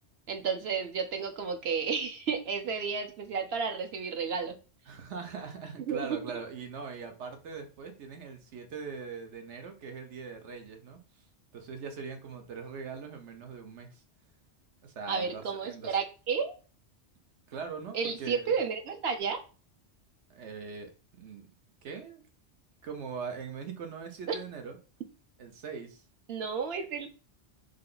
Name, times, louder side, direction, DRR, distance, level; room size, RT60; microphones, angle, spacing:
voice 1, 0.3-4.6 5.9-6.2 15.1-16.5 17.9-19.4 24.3-24.4 26.3-27.1, right 6 dB, 65° right, 5 dB, 1.0 m, -32 dB
voice 2, 4.9-11.0 11.5-14.0 14.8-16.0 17.5-18.5 20.3-20.9 21.2-21.5 21.8-22.2 22.8-24.8 25.4-26.0, right 5 dB, 85° right, 5 dB, 1.2 m, -41 dB
3.6 x 3.3 x 3.8 m, 0.35 s
omnidirectional pair, 1.2 m